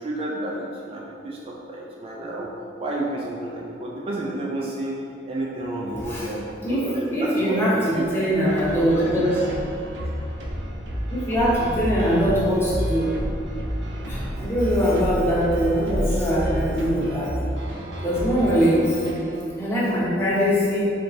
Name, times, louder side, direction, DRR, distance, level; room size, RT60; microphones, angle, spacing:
voice 1, 0.0-2.5 2.8-5.0 5.3-8.5, right 1 dB, 30° right, -3 dB, 0.4 m, -31 dB
voice 2, 6.6-9.4 11.1-13.1 14.0-17.3 18.0-19.1 19.6-20.9, equal, 15° left, -9 dB, 1.1 m, -22 dB
sound 1, 8.5-19.4, equal, 75° right, 0.7 m, -30 dB
4.6 x 3.5 x 2.6 m, 2.5 s
head